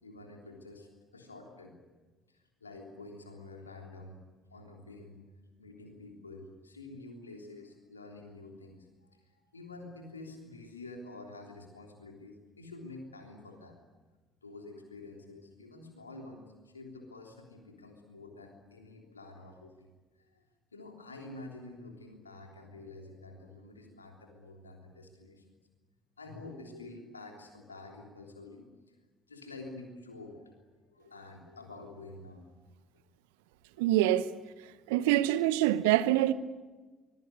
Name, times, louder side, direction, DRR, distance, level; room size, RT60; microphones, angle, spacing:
voice 1, 0.0-1.7 2.3-4.2 4.5-5.2 5.6-13.8 14.4-19.9 20.2-20.4 20.7-25.4 26.2-28.9 29.3-30.6 30.9-32.5 34.3-34.4, left 2 dB, 85° left, 3.4 m, -48 dB
voice 2, 33.8-34.3 34.9-36.3, right 14 dB, 70° right, 0.9 m, -25 dB
24.5 x 21.0 x 9.5 m
figure-of-eight pair, 50°, 0 cm